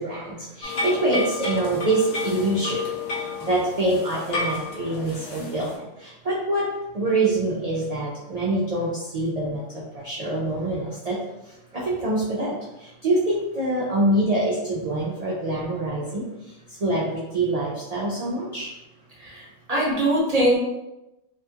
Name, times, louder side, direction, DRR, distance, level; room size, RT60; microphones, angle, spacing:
voice 1, 0.0-2.8 3.4-6.7 6.9-11.2 11.7-16.2 16.8-18.7, right 2 dB, 70° right, -6 dB, 0.3 m, -25 dB
sound 1, 0.6-5.8, left 4 dB, 75° left, 1.0 m, -31 dB
voice 2, 19.7-20.6, right 1 dB, 40° right, -5 dB, 0.7 m, -21 dB
2.8 x 2.3 x 2.7 m, 0.95 s
omnidirectional pair, 1.4 m